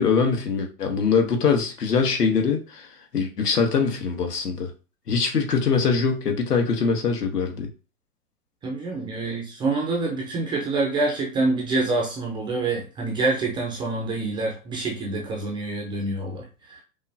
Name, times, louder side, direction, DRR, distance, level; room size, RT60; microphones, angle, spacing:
voice 1, 0.0-2.9 3.1-4.7 5.1-7.7, left 5 dB, 85° left, 1.3 m, -23 dB
voice 2, 8.6-16.8, right 3 dB, 10° right, 0.5 m, -26 dB
5.4 x 2.2 x 2.7 m
hypercardioid pair, 120°, 46 cm